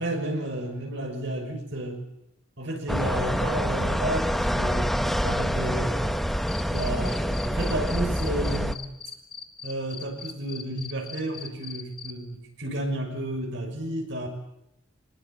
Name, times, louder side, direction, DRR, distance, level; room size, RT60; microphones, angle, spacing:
voice 1, 0.0-2.0 2.6-4.9 5.2-6.2 6.7-8.8 9.6-14.3, right 1 dB, 60° right, 3 dB, 6.3 m, -32 dB
sound 1, 2.9-8.7, equal, ahead, 1.1 m, -26 dB
Cricket, 6.5-12.1, left 6 dB, 25° left, 1.9 m, -39 dB
25.5 x 20.5 x 8.7 m, 0.85 s
head